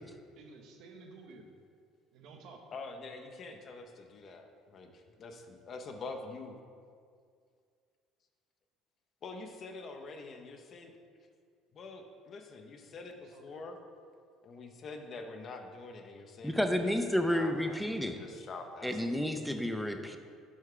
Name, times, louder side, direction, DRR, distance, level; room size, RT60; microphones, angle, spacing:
voice 1, 0.4-1.5 2.1-2.6 12.9-13.0 13.3-13.6, right 3 dB, 70° right, 2 dB, 0.8 m, -52 dB
voice 2, 2.7-6.6 9.2-10.9 11.7-13.8 14.4-19.2, left 3 dB, 50° left, 5 dB, 0.7 m, -46 dB
voice 3, 16.4-18.2 18.8-20.2, equal, ahead, 6 dB, 0.5 m, -31 dB
6.3 x 4.5 x 3.7 m, 2.2 s
supercardioid pair, 85°, 0 cm